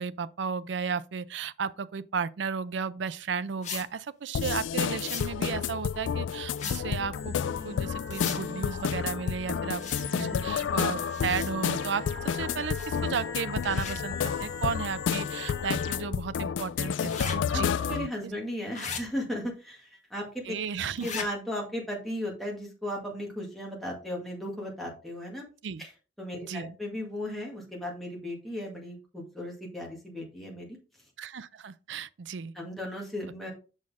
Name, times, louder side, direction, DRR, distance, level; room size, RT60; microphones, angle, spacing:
voice 1, 0.0-9.8 10.1-18.1 20.4-21.3 25.6-25.8 26.4-26.8 31.2-32.5, right 6 dB, 75° right, 0.4 m, -34 dB
sound 1, 3.6-3.9 5.0-5.3 6.5-6.8 8.1-8.4 9.7-10.1 11.1-11.5 12.7-13.1 13.6-14.0 17.0-17.4 18.7-19.0 21.0-21.3, left 6 dB, 40° left, 1.3 m, -37 dB
sound 2, 4.3-18.1, left 7 dB, 85° left, 0.3 m, -30 dB
sound 3, 7.1-16.0, left 3 dB, 60° left, 1.6 m, -42 dB
voice 2, 10.0-10.4 17.5-20.4 21.0-25.4 25.8-25.9 26.2-30.8 32.5-33.5, left 1 dB, ahead, 1.9 m, -36 dB
6.5 x 6.3 x 3.5 m
head